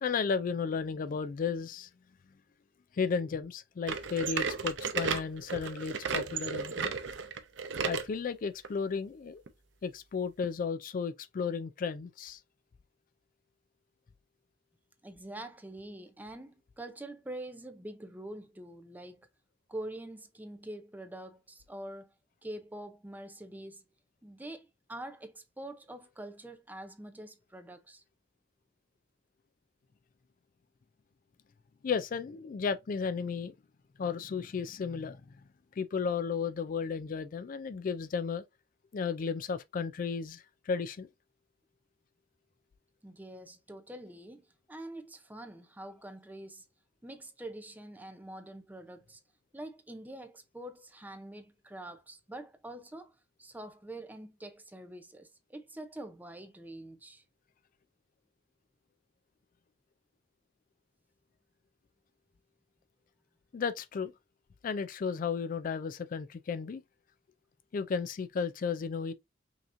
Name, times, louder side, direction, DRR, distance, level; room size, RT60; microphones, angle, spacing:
voice 1, 0.0-1.9 2.9-6.9 7.8-9.4 9.8-12.4 31.8-33.5 34.0-35.2 35.8-38.4 38.9-41.1 63.5-64.1 64.6-66.8 67.7-69.1, left 5 dB, 45° left, 0.3 m, -34 dB
sound 1, 3.9-8.1 8.6-8.8 9.5-9.6 10.4-10.5, right 5 dB, 70° right, 0.7 m, -34 dB
voice 2, 15.0-19.3 19.7-22.1 22.4-23.8 24.2-28.0 43.0-46.6 47.0-49.2 49.5-57.2, right 1 dB, 10° right, 0.5 m, -45 dB
5.5 x 2.9 x 2.5 m
head